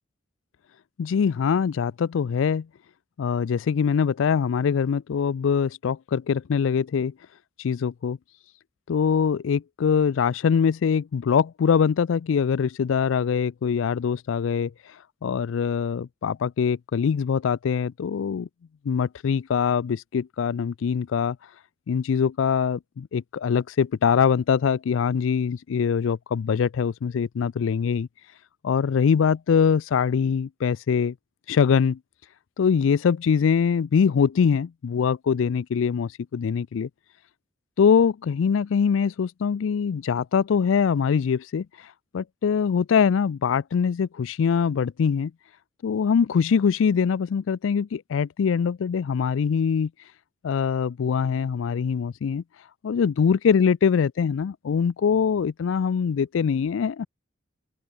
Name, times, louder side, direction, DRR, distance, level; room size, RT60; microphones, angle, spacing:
voice 1, 1.0-2.7 3.2-7.1 7.6-8.2 8.9-14.7 15.2-18.5 18.8-21.4 21.9-28.1 28.6-31.1 31.5-32.0 32.6-36.9 37.8-41.7 42.1-45.3 45.8-49.9 50.4-52.4 52.8-57.1, left 6 dB, 85° left, 0.4 m, -23 dB
open air
head